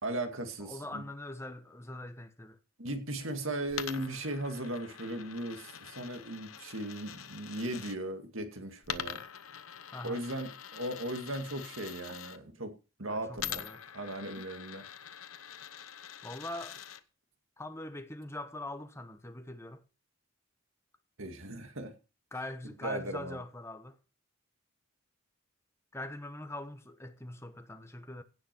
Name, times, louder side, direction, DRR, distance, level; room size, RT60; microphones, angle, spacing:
voice 1, 0.0-1.0 2.8-9.2 10.0-12.7 13.0-13.6 13.9-14.8 21.2-21.9 22.8-23.4, right 1 dB, 65° right, 2.2 m, -37 dB
voice 2, 0.6-2.6 9.9-10.2 13.1-13.8 16.2-16.8 17.6-19.8 22.3-24.0 25.9-28.2, left 1 dB, 10° left, 1.1 m, -42 dB
Coin (dropping), 3.7-8.0 8.8-12.4 13.4-17.0, left 9 dB, 75° left, 0.9 m, -44 dB
16.5 x 6.5 x 6.1 m
head